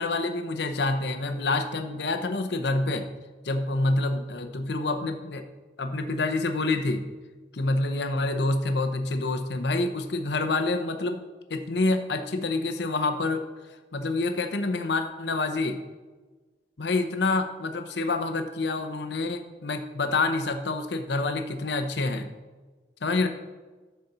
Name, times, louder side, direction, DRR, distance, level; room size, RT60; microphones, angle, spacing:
voice 1, 0.0-3.1 3.4-5.4 5.8-7.0 7.5-11.2 11.5-13.4 13.9-15.8 16.8-22.3 23.0-23.3, left 2 dB, 65° left, 6 dB, 0.7 m, -27 dB
10.5 x 4.2 x 6.7 m, 1.3 s
head